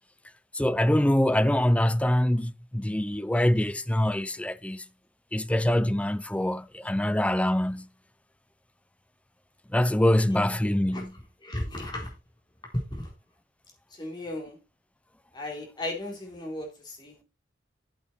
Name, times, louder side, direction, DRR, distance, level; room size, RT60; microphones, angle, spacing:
voice 1, 0.5-4.8 5.3-7.9 9.7-11.1, left 1 dB, 5° left, 0.5 m, -24 dB
voice 2, 11.4-12.1 12.7-13.1 13.9-14.6 15.3-17.2, left 1 dB, 25° left, 4.1 m, -35 dB
8.7 x 8.4 x 4.3 m
head